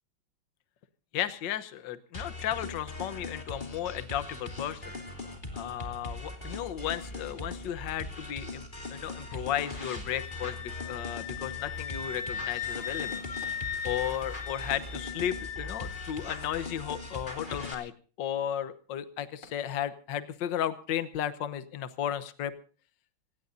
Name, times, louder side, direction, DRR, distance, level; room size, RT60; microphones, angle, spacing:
voice 1, 1.1-4.8 5.5-8.6 8.9-13.2 13.8-17.9 18.2-22.5, left 10 dB, 65° left, 13 dB, 1.6 m, -34 dB
sound 1, 2.1-17.8, left 2 dB, 20° left, 3.1 m, -40 dB
Wind instrument woodwind instrument, 10.1-16.5, left 8 dB, 50° left, 2.8 m, -38 dB
sound 2, 10.4-11.3 13.4-14.3 14.6-14.7 16.4-17.3 19.4-20.1 20.8-20.9, left 3 dB, 85° left, 3.8 m, -56 dB
26.5 x 17.5 x 2.7 m, 0.40 s
omnidirectional pair, 2.3 m